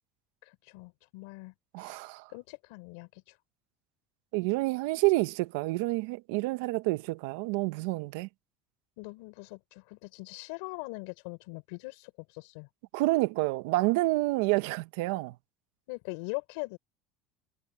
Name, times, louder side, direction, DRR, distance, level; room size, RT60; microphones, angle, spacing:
voice 1, 0.4-2.0 2.3-3.4 9.0-12.7 15.9-16.8, left 27 dB, 85° left, 4.5 m, -42 dB
voice 2, 1.7-2.2 4.3-8.3 12.9-15.3, right 21 dB, 90° right, 0.7 m, -28 dB
cardioid pair, 170°, 0 cm